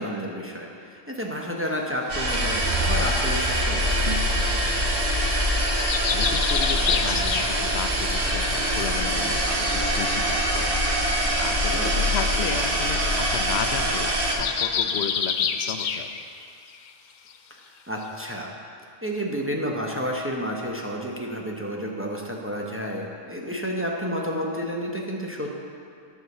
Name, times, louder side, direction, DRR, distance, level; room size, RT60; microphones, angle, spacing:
voice 1, 0.0-4.1 11.7-12.1 17.9-18.5 19.0-25.5, equal, 15° right, -2 dB, 0.8 m, -30 dB
sound 1, 1.6-1.8 2.5-4.8 5.3-7.9 8.2-9.8 10.3-10.4 10.6-10.8 11.8-11.9 12.2-12.3 12.6-12.8 13.1-13.3 13.5-16.4 16.7-16.9 17.3-17.4 18.0-18.1, left 7 dB, 55° left, 0.5 m, -29 dB
sound 2, 2.1-14.4, equal, 60° right, 1.4 m, -24 dB
voice 2, 5.9-16.1, left 7 dB, 85° left, 8 dB, 0.8 m, -34 dB
11.0 x 4.7 x 6.6 m, 2.3 s
omnidirectional pair, 1.1 m